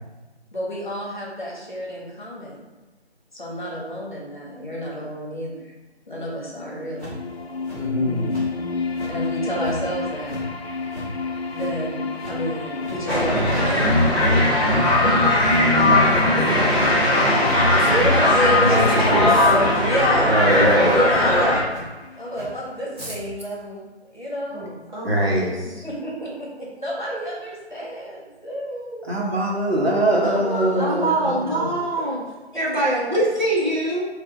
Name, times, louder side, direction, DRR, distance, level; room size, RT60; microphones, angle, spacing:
voice 1, 0.5-2.6 3.3-5.7 6.1-7.2 9.1-10.4 11.2-15.4 16.4-16.5 17.6-20.6 20.9-21.7 22.1-24.7 25.6-29.4 30.2-31.8, equal, 45° left, -4 dB, 1.2 m, -29 dB
sound 1, 6.8-22.7, left 4 dB, 70° left, 0.5 m, -31 dB
sound 2, 7.0-7.3 7.6-7.8 8.3-8.5 8.9-9.1 9.6-9.8 10.1-10.4 10.9-11.1 11.5-11.7 12.1-12.3 12.8-13.0 13.3-13.6 14.1-14.3 14.7-15.2 15.5-15.6 16.1-16.2 16.7-16.9 17.4-17.6 18.0-18.3 18.5-18.9 19.3-19.4 19.9-20.1 20.5-20.7 21.1-21.2 21.7-21.8 22.3-22.5 22.9-23.1, equal, 15° left, 1.3 m, -39 dB
voice 2, 7.7-8.3 15.8-16.4 18.6-18.8 19.1-19.2 20.3-20.9 25.0-25.5 29.1-31.1 31.5-31.7, right 1 dB, 65° right, -3 dB, 1.2 m, -21 dB
sound 3, 13.1-21.6, left 1 dB, 20° right, 1.4 m, -18 dB
voice 3, 16.2-16.9 18.8-19.0 21.2-21.6 24.5-25.8 30.8-32.2 32.5-34.1, right 1 dB, 45° right, -6 dB, 1.2 m, -25 dB
4.4 x 2.7 x 3.9 m, 1.2 s
figure-of-eight pair, 165°, 33 cm